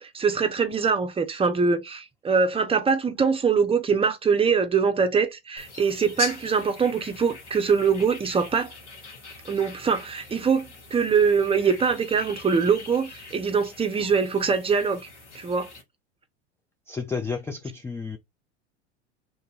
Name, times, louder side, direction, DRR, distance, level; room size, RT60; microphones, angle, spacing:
voice 1, 0.0-8.7 9.5-15.1 15.3-15.7, right 5 dB, 15° right, 0.7 m, -23 dB
sound 1, 5.6-15.8, left 3 dB, 85° left, 1.1 m, -41 dB
voice 2, 16.9-18.2, left 5 dB, 10° left, 0.4 m, -31 dB
2.7 x 2.6 x 3.8 m
hypercardioid pair, 80°, 34 cm